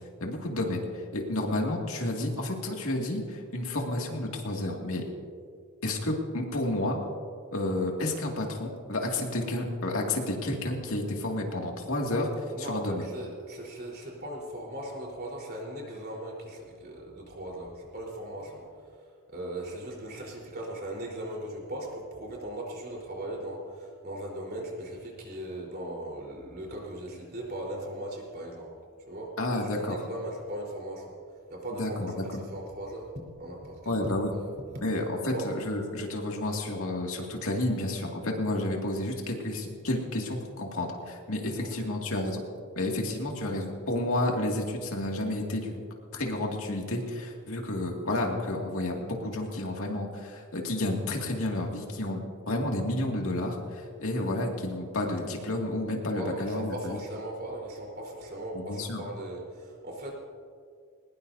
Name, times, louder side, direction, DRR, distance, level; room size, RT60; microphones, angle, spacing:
voice 1, 0.2-5.0 5.8-7.0 7.5-13.1 29.4-30.0 31.7-32.4 33.9-34.3 34.8-42.4 42.8-45.8 46.1-57.0 58.5-59.0, left 1 dB, 70° left, 0 dB, 2.3 m, -31 dB
voice 2, 12.5-28.7 29.1-29.3 29.6-31.1 31.5-34.1 34.4-34.8 35.2-35.5 41.5-41.9 56.1-60.1, right 1 dB, 45° right, -2 dB, 4.1 m, -38 dB
21.5 x 20.5 x 2.7 m, 2.1 s
head